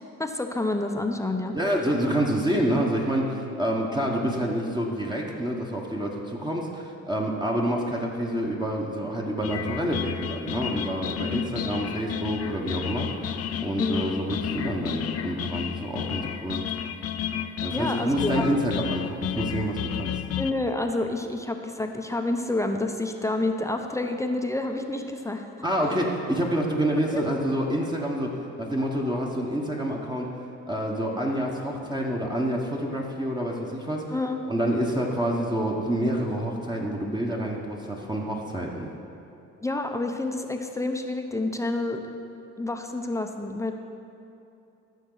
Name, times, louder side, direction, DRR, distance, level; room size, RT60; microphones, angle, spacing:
voice 1, 0.2-1.6 13.8-14.1 17.7-18.6 20.4-25.5 27.1-27.2 34.1-34.4 39.6-42.1 42.6-43.7, left 2 dB, 10° left, 4 dB, 0.7 m, -28 dB
voice 2, 1.5-13.1 13.6-16.6 17.6-20.1 25.6-30.3 30.7-34.2 34.5-38.9, right 1 dB, 15° right, -2 dB, 1.2 m, -27 dB
sound 1, 9.4-20.5, left 9 dB, 55° left, 0.5 m, -32 dB
14.0 x 6.2 x 3.9 m, 2.9 s
cardioid pair, 90°, 30 cm